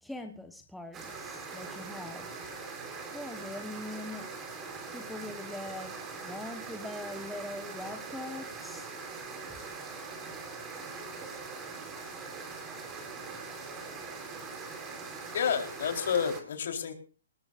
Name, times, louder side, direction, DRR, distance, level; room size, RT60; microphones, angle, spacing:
voice 1, 0.0-2.4 3.1-4.3 4.9-5.9 6.2-8.9, left 1 dB, ahead, 5 dB, 1.1 m, -42 dB
sound 1, 0.9-16.4, right 4 dB, 15° right, 4.2 m, -42 dB
voice 2, 15.3-16.9, left 7 dB, 60° left, 4 dB, 3.9 m, -30 dB
19.5 x 19.5 x 2.5 m, 0.37 s
hypercardioid pair, 160°, 0 cm